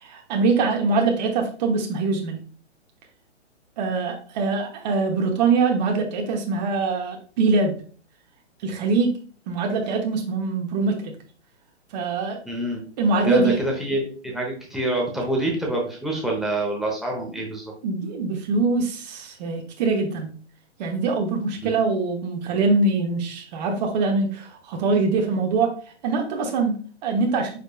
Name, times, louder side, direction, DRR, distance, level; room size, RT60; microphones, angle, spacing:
voice 1, 0.0-2.4 3.8-7.7 8.6-9.2 9.5-11.1 11.9-12.4 13.0-13.6 17.8-20.3 20.8-25.7 26.0-27.5, right 4 dB, 40° right, 2 dB, 1.0 m, -23 dB
voice 2, 12.5-12.8 13.2-17.7 21.6-21.7, right 1 dB, ahead, -2 dB, 0.8 m, -26 dB
5.1 x 4.2 x 2.2 m, 0.43 s
hypercardioid pair, 130°, 35 cm